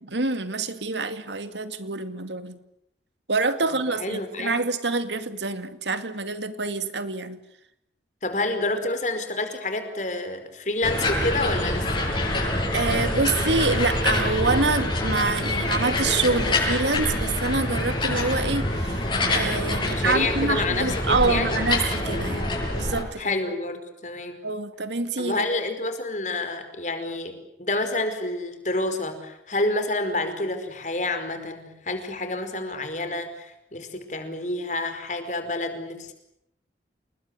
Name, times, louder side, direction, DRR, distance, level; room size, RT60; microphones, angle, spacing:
voice 1, 0.0-2.6 3.3-7.4 12.5-23.3 24.4-25.4, right 3 dB, 90° right, 10 dB, 2.4 m, -26 dB
voice 2, 4.0-4.6 8.2-12.1 19.8-21.6 23.2-24.4 25.2-36.1, left 2 dB, 45° left, 8 dB, 5.0 m, -28 dB
sound 1, 10.8-23.0, left 1 dB, 30° left, 7.8 m, -25 dB
29.0 x 21.0 x 9.7 m, 0.79 s
head